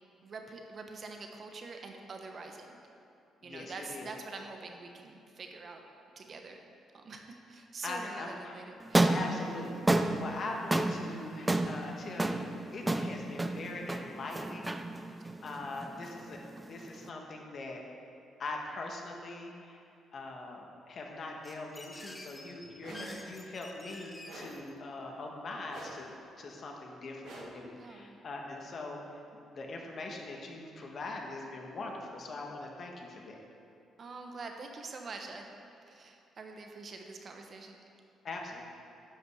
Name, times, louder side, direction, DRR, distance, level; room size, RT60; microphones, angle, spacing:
voice 1, 0.2-2.8 3.4-5.8 6.2-6.6 6.9-9.2 22.9-23.2 27.8-28.2 34.0-35.5 35.9-37.8, right 3 dB, 45° right, 3 dB, 1.1 m, -45 dB
voice 2, 3.4-4.1 7.8-8.6 9.1-14.7 15.4-17.8 18.4-19.8 20.1-29.0 29.5-33.4 38.2-38.6, left 2 dB, 50° left, 0 dB, 1.5 m, -42 dB
sound 1, 8.8-17.1, right 2 dB, 15° right, 0.5 m, -32 dB
sound 2, 21.4-24.7, left 1 dB, 15° left, 1.2 m, -49 dB
sound 3, 22.8-23.3 24.2-24.7 25.7-26.2 27.2-27.7, right 2 dB, 75° right, 1.9 m, -48 dB
10.5 x 5.5 x 6.5 m, 2.7 s
cardioid pair, 90°, 0 cm